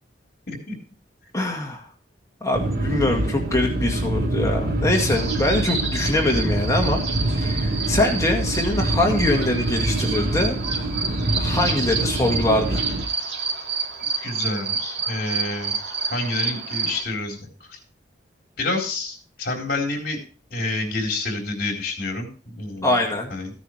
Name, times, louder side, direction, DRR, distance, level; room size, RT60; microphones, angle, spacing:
voice 1, 1.3-1.9 2.4-7.0 7.4-10.6 11.4-12.8 22.8-23.3, left 2 dB, 20° left, 0 dB, 1.9 m, -23 dB
sound 1, 2.5-13.1, right 1 dB, 55° right, 1.1 m, -25 dB
sound 2, 4.9-17.0, right 5 dB, 70° right, 2.4 m, -29 dB
voice 2, 14.2-15.8 16.1-17.8 18.6-20.2 20.5-23.0 23.3-23.5, left 2 dB, 55° left, 2 dB, 3.9 m, -28 dB
15.0 x 9.9 x 3.2 m, 0.37 s
head